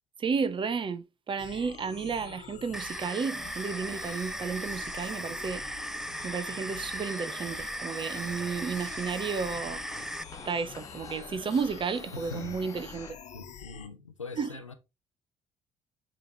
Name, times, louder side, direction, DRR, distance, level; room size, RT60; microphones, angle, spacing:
voice 1, 0.2-5.6 6.2-9.9 10.4-13.2 14.4-14.6, right 5 dB, 30° right, 0.8 m, -32 dB
sound 1, 1.4-13.9, left 7 dB, 45° left, 1.2 m, -46 dB
sound 2, 2.7-10.2, right 1 dB, 5° right, 0.3 m, -37 dB
sound 3, 3.3-13.1, left 3 dB, 20° left, 1.3 m, -51 dB
voice 2, 12.1-12.5 13.3-14.7, left 4 dB, 85° left, 0.6 m, -42 dB
8.7 x 3.2 x 4.1 m
figure-of-eight pair, 50°, 16 cm